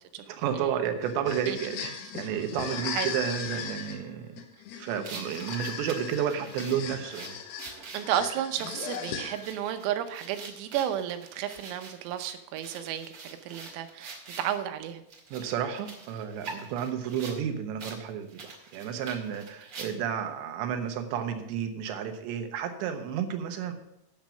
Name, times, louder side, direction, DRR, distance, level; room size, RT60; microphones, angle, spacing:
voice 1, 0.3-4.3 4.8-7.4 14.0-14.1 15.3-23.7, right 8 dB, 75° right, 6 dB, 2.9 m, -32 dB
sound 1, 1.0-9.7, left 7 dB, 75° left, 2.8 m, -38 dB
sound 2, 5.0-14.6 15.1-17.4 17.8-18.0 18.3-20.2, right 3 dB, 55° right, 1.5 m, -45 dB
voice 2, 7.9-15.0, right 10 dB, 90° right, 9 dB, 3.6 m, -32 dB
10.5 x 7.4 x 6.1 m, 0.83 s
omnidirectional pair, 5.9 m